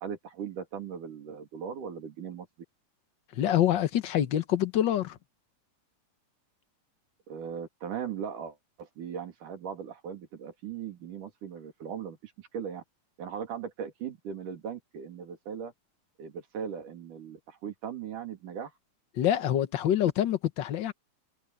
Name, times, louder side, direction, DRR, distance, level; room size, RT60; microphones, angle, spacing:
voice 1, 0.0-2.5 7.3-12.8 13.2-15.7 16.2-18.7, right 7 dB, 90° right, 4.3 m, -38 dB
voice 2, 3.3-5.2 19.2-20.9, left 11 dB, 65° left, 1.1 m, -26 dB
omnidirectional pair, 3.5 m